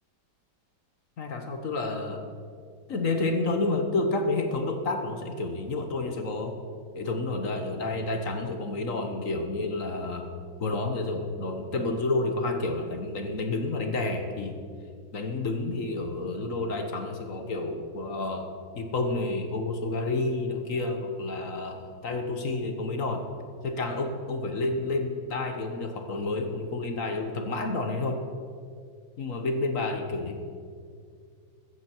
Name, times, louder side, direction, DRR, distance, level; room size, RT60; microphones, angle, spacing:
voice 1, 1.2-2.3 2.9-6.6 6.9-10.3 10.6-14.6 15.1-18.5 18.7-23.3 23.6-28.2 29.2-30.4, left 2 dB, 50° left, 6 dB, 1.3 m, -30 dB
14.5 x 14.5 x 4.5 m, 2.2 s
omnidirectional pair, 2.1 m